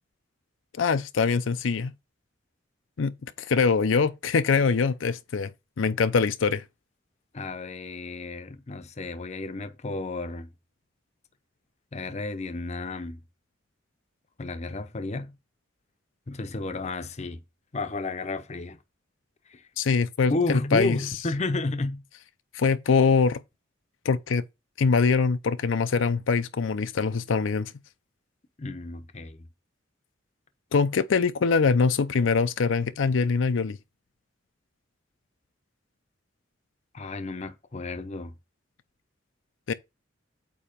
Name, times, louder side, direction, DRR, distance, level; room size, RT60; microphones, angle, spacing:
voice 1, 0.8-1.9 3.0-3.1 3.5-5.5 5.8-6.6 19.8-21.0 22.5-23.4 24.0-24.4 24.8-27.7 30.7-33.8 39.7-39.8, left 5 dB, 85° left, 0.5 m, -23 dB
voice 2, 7.3-10.5 11.9-13.2 14.4-15.4 16.3-17.4 17.7-18.8 19.5-19.7 20.3-22.0 28.6-29.4 36.9-38.3, left 2 dB, 35° left, 0.6 m, -32 dB
8.6 x 2.9 x 5.1 m
head